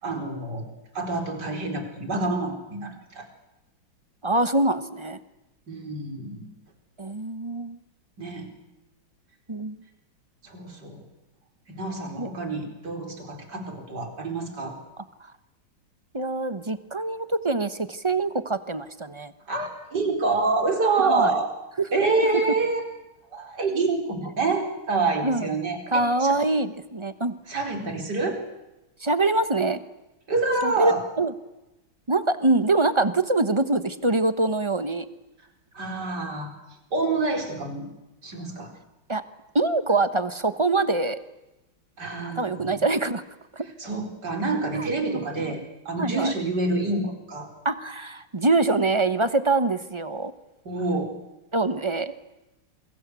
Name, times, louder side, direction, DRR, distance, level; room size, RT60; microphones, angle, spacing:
voice 1, 0.0-0.7 1.0-3.3 5.7-6.5 8.2-8.5 10.4-11.0 11.7-14.8 19.5-21.5 21.9-22.8 23.3-26.4 27.5-28.4 30.3-31.0 35.7-36.5 36.9-37.9 38.2-38.7 42.0-42.8 43.8-47.5 50.7-51.1, right 3 dB, 55° right, 4 dB, 5.2 m, -27 dB
voice 2, 4.2-5.2 7.0-7.8 9.5-9.8 12.2-12.3 16.1-19.3 21.0-21.3 21.8-22.3 25.2-25.5 25.9-27.3 29.0-29.8 30.6-31.3 32.1-35.1 39.1-39.2 39.5-41.2 42.4-43.2 43.5-43.7 44.7-45.6 46.0-46.3 47.6-50.3 51.5-52.1, right 2 dB, 25° right, 11 dB, 0.7 m, -24 dB
28.5 x 23.0 x 8.3 m, 0.97 s
omnidirectional pair, 2.2 m